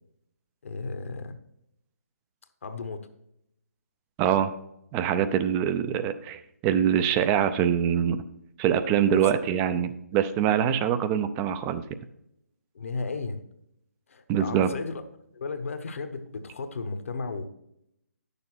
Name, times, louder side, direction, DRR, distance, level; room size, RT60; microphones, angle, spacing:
voice 1, 0.6-1.4 2.6-3.1 8.8-9.3 9.7-9.8 12.7-13.4 14.1-15.0 15.3-17.5, left 4 dB, 55° left, 9 dB, 1.0 m, -34 dB
voice 2, 4.2-4.5 4.9-8.2 8.6-11.8 14.3-14.7, right 9 dB, 20° right, 10 dB, 0.5 m, -24 dB
10.0 x 6.8 x 4.3 m, 0.79 s
figure-of-eight pair, 140°, 9 cm